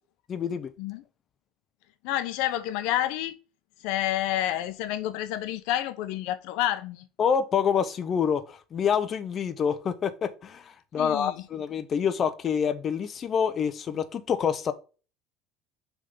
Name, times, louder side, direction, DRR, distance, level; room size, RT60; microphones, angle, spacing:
voice 1, 0.3-0.7 7.2-14.7, left 7 dB, 30° left, 0.6 m, -27 dB
voice 2, 2.0-3.4 3.8-7.1 11.0-11.4, left 13 dB, 75° left, 0.8 m, -29 dB
6.6 x 3.6 x 5.1 m
cardioid pair, 155°, 0 cm